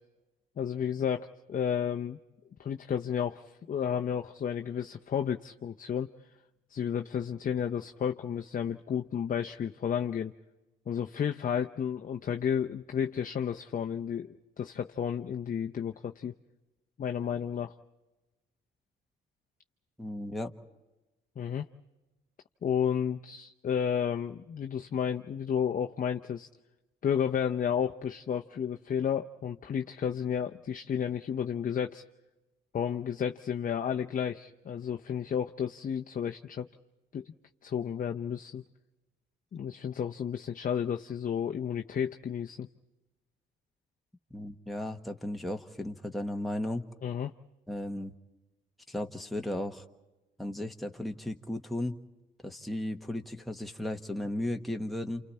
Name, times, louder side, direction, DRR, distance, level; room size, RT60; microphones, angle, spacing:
voice 1, 0.6-2.2 2.6-6.1 6.7-10.3 10.9-16.3 17.0-17.7 21.4-21.7 22.6-26.5 27.0-32.0 32.7-36.7 37.1-37.3 37.6-38.6 39.5-42.7 47.0-47.3, left 8 dB, 45° left, 4 dB, 0.8 m, -32 dB
voice 2, 20.0-20.5 44.3-46.8 47.7-48.1 48.9-49.8 50.4-52.0 52.4-55.2, left 1 dB, ahead, 2 dB, 1.5 m, -35 dB
29.0 x 28.5 x 4.3 m, 1.1 s
cardioid pair, 90°, 20 cm